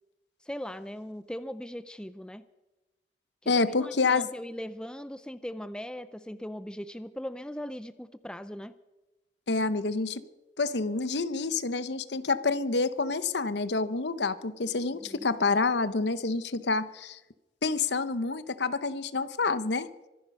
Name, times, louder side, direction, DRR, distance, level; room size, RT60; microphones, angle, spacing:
voice 1, 0.4-2.5 3.4-8.8 15.0-15.3, equal, 5° left, 13 dB, 0.4 m, -39 dB
voice 2, 3.5-4.2 9.5-10.2 10.6-17.2 17.6-19.9, left 3 dB, 70° left, 14 dB, 0.9 m, -28 dB
24.5 x 10.5 x 5.5 m, 1.0 s
head